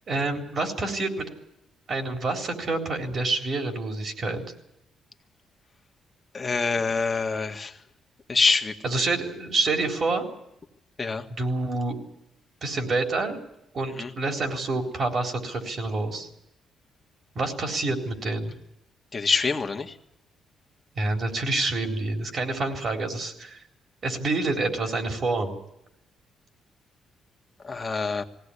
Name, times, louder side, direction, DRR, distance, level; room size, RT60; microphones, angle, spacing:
voice 1, 0.1-1.3 1.9-4.4 8.8-10.3 11.3-12.0 12.6-13.4 13.7-16.3 17.4-18.5 21.0-23.6 24.0-25.6, right 3 dB, 50° right, 3 dB, 3.9 m, -27 dB
voice 2, 6.3-7.7 8.3-8.7 11.0-11.2 14.0-14.1 19.1-19.9 27.6-28.2, left 4 dB, 30° left, 5 dB, 1.8 m, -25 dB
20.0 x 17.0 x 9.9 m, 0.85 s
cardioid pair, 90°, 0 cm